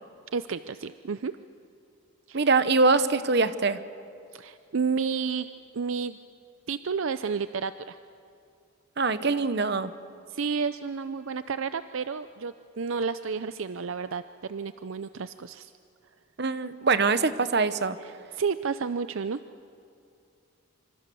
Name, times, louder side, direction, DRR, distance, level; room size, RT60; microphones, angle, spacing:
voice 1, 0.3-1.3 2.3-2.5 4.3-5.5 5.7-6.2 6.7-8.0 10.3-15.7 18.3-19.4, right 5 dB, 70° right, 12 dB, 0.6 m, -31 dB
voice 2, 2.3-3.8 9.0-9.9 16.4-18.0, right 4 dB, 50° right, 12 dB, 1.0 m, -23 dB
26.5 x 26.0 x 7.1 m, 2.6 s
head